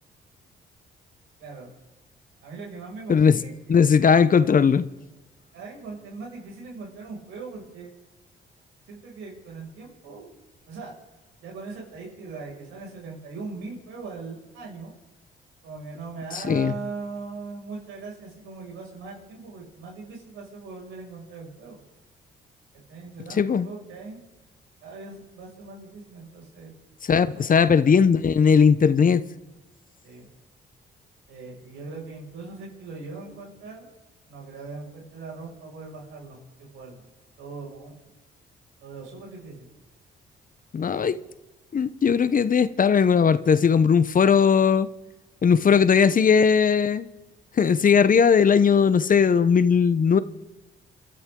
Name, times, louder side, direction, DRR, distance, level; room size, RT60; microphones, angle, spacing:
voice 1, 1.4-1.7 2.4-3.5 5.5-7.9 8.9-10.3 10.7-10.9 11.4-15.0 15.6-21.8 22.9-24.2 24.8-26.7 27.3-27.7 30.0-30.3 31.3-33.9 34.3-36.4 36.7-37.0 37.4-37.9 38.8-39.7, right 4 dB, 90° right, 6.0 m, -40 dB
voice 2, 3.7-4.8 16.3-16.7 23.4-23.7 27.0-29.2 40.7-41.2 41.7-44.9 45.4-47.1 47.6-50.2, left 6 dB, 45° left, 0.8 m, -18 dB
28.5 x 12.5 x 3.8 m
supercardioid pair, 70°, 20 cm